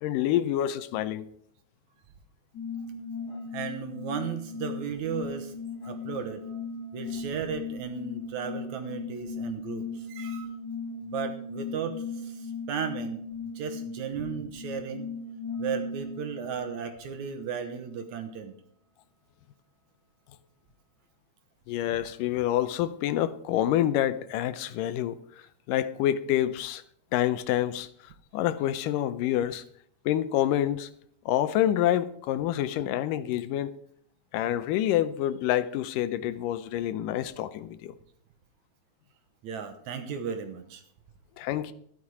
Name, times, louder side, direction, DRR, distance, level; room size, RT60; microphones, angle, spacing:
voice 1, 0.0-1.3 21.7-25.2 25.7-26.8 27.1-27.9 28.3-29.6 30.1-30.9 31.3-33.8 34.3-38.0 41.4-41.7, left 12 dB, 80° left, 2.3 m, -27 dB
sound 1, 2.5-16.9, left 4 dB, 35° left, 2.1 m, -37 dB
voice 2, 3.5-5.5 5.9-6.4 6.9-10.5 11.0-13.2 13.6-15.1 15.6-18.6 39.4-40.8, right 7 dB, 65° right, 2.4 m, -35 dB
12.5 x 11.5 x 4.9 m
omnidirectional pair, 3.8 m